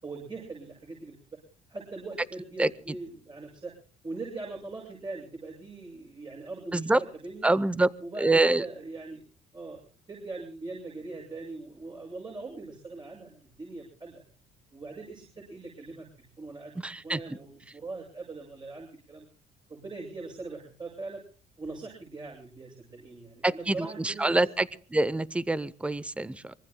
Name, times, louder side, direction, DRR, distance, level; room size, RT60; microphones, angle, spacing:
voice 1, 0.0-1.4 1.7-3.7 4.0-7.5 8.0-9.2 9.5-9.8 10.1-14.2 14.7-16.7 17.0-19.3 19.7-21.2 21.6-24.4, right 3 dB, 25° right, -3 dB, 6.6 m, -41 dB
voice 2, 7.4-7.9 8.2-8.6 16.8-17.2 23.4-24.7 24.9-26.5, right 2 dB, 5° right, 18 dB, 0.6 m, -25 dB
25.0 x 23.0 x 2.2 m, 0.41 s
cardioid pair, 110°, 17 cm